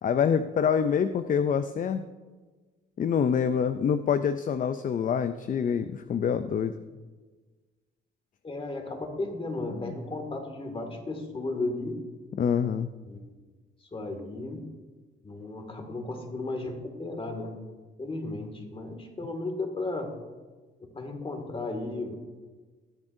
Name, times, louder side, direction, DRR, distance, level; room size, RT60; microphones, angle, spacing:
voice 1, 0.0-2.0 3.0-6.7 9.7-9.9 12.4-12.9, left 7 dB, 40° left, 11 dB, 0.5 m, -26 dB
voice 2, 8.4-12.0 13.1-13.2 13.9-14.7 15.2-17.5 18.0-20.1 20.8-22.2, left 2 dB, 25° left, 4 dB, 2.1 m, -34 dB
21.0 x 7.2 x 2.7 m, 1.3 s
cardioid pair, 90°, 20 cm